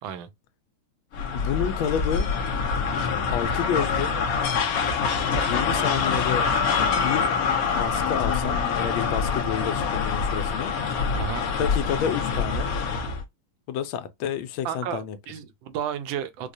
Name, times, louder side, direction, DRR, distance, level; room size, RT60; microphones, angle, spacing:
sound 1, 1.1-13.2, left 5 dB, 65° left, 0.9 m, -25 dB
voice 1, 1.3-2.3 3.3-4.1 5.5-6.5 6.9-7.3 7.7-10.7 11.6-12.7 13.7-15.2, left 8 dB, 80° left, 1.4 m, -29 dB
voice 2, 11.1-11.5 14.6-16.5, right 9 dB, 75° right, 1.4 m, -33 dB
4.7 x 2.1 x 2.6 m
omnidirectional pair, 2.2 m